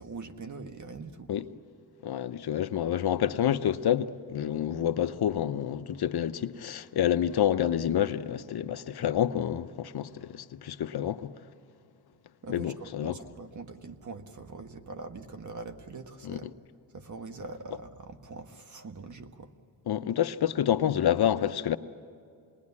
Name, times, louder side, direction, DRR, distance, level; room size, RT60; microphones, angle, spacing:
voice 1, 0.0-1.5 12.4-16.5 16.9-19.5, right 3 dB, 45° right, 1.6 m, -43 dB
voice 2, 2.0-11.3 12.5-13.2 16.2-16.4 19.9-21.8, left 10 dB, 60° left, 0.9 m, -28 dB
27.0 x 20.5 x 9.8 m
cardioid pair, 85°, 43 cm